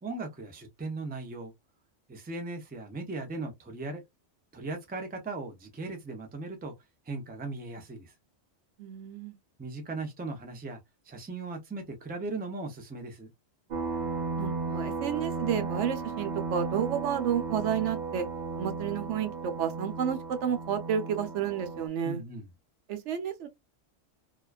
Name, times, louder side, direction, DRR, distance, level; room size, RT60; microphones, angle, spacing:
voice 1, 0.0-1.5 2.1-4.0 4.5-6.7 7.1-8.1 9.6-10.8 11.1-13.3 22.0-22.4, right 3 dB, 15° right, 0.4 m, -38 dB
voice 2, 8.8-9.4 14.4-18.3 18.6-22.2 22.9-23.5, right 8 dB, 85° right, 0.9 m, -31 dB
sound 1, 13.7-21.9, right 4 dB, 55° right, 0.6 m, -35 dB
2.4 x 2.2 x 2.3 m
omnidirectional pair, 1.2 m